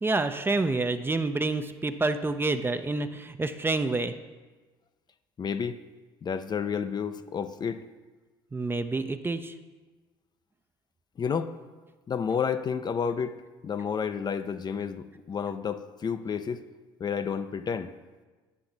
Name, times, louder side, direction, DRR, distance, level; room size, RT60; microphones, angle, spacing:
voice 1, 0.0-4.1 8.5-9.5, right 3 dB, 15° right, 9 dB, 0.5 m, -28 dB
voice 2, 5.4-5.8 6.2-7.8 11.2-11.5 12.1-13.4 13.6-16.6 17.0-17.9, left 6 dB, 35° left, 10 dB, 0.5 m, -30 dB
9.7 x 5.8 x 3.9 m, 1.3 s
hypercardioid pair, 65°, 13 cm